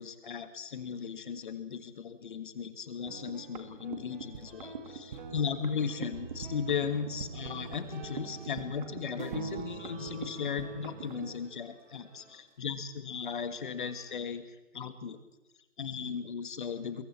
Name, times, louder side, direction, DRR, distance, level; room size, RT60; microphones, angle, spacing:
voice 1, 0.0-14.4 14.7-15.2 15.8-17.0, left 6 dB, 40° left, 10 dB, 1.8 m, -36 dB
sound 1, 3.1-11.4, right 5 dB, 35° right, 2.0 m, -42 dB
sound 2, 3.7-14.1, right 3 dB, 70° right, 7.0 m, -60 dB
27.5 x 22.0 x 4.4 m, 1.1 s
figure-of-eight pair, 150°, 38 cm